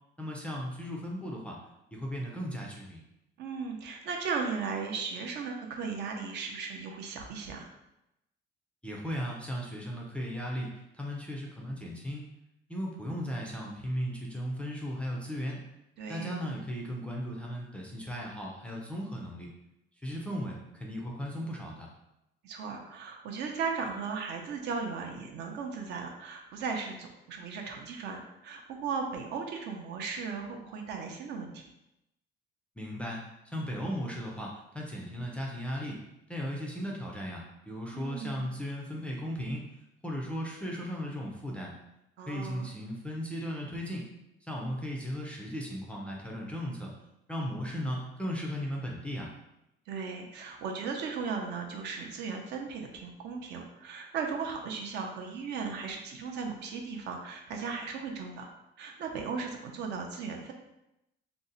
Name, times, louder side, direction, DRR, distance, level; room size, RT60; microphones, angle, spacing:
voice 1, 0.2-1.6 1.9-3.0 8.8-12.3 12.7-15.6 16.1-19.5 20.0-21.9 32.8-33.2 33.5-36.0 36.3-39.7 40.0-41.7 42.3-44.0 44.5-46.9 47.3-49.3, equal, 5° left, -2 dB, 0.3 m, -36 dB
voice 2, 3.4-7.7 16.0-16.4 22.4-31.7 37.9-38.5 42.2-42.7 49.9-58.5 58.8-60.5, right 5 dB, 60° right, 2 dB, 0.5 m, -36 dB
2.6 x 2.0 x 3.8 m, 0.87 s
cardioid pair, 160°, 20 cm